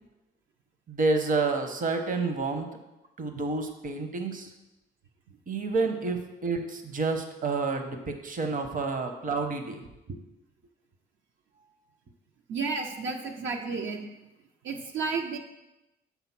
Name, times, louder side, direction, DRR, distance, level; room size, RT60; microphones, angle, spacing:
voice 1, 0.9-2.7 3.2-4.5 5.5-9.8 10.1-10.2, right 3 dB, 40° right, 6 dB, 0.9 m, -29 dB
voice 2, 12.5-14.0 14.6-15.4, right 4 dB, 75° right, 2 dB, 0.8 m, -32 dB
7.2 x 3.9 x 5.9 m, 0.97 s
cardioid pair, 90°, 20 cm